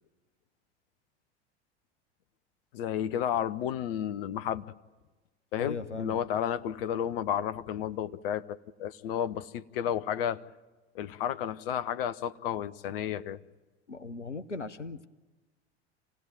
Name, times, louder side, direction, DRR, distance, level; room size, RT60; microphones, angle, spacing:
voice 1, 2.7-4.6 5.5-10.4 10.9-13.4, left 9 dB, 55° left, 15 dB, 0.9 m, -32 dB
voice 2, 5.6-6.2 13.9-15.1, left 3 dB, 90° left, 11 dB, 0.8 m, -38 dB
27.5 x 17.5 x 9.2 m, 1.2 s
figure-of-eight pair, 80°, 34 cm